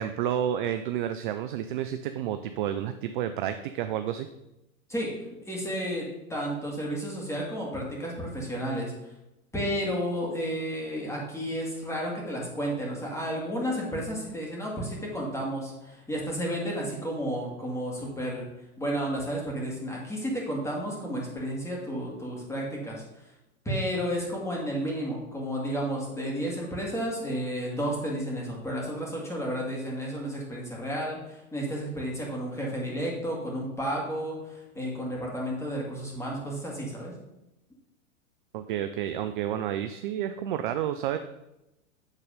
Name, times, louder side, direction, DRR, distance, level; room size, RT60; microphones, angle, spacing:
voice 1, 0.0-4.3 38.5-41.2, right 10 dB, 40° right, 9 dB, 0.4 m, -30 dB
voice 2, 4.9-9.1 9.5-18.5 18.8-23.3 23.6-37.1, equal, 5° left, -3 dB, 2.2 m, -32 dB
8.0 x 4.0 x 5.2 m, 0.92 s
hypercardioid pair, 110°, 42 cm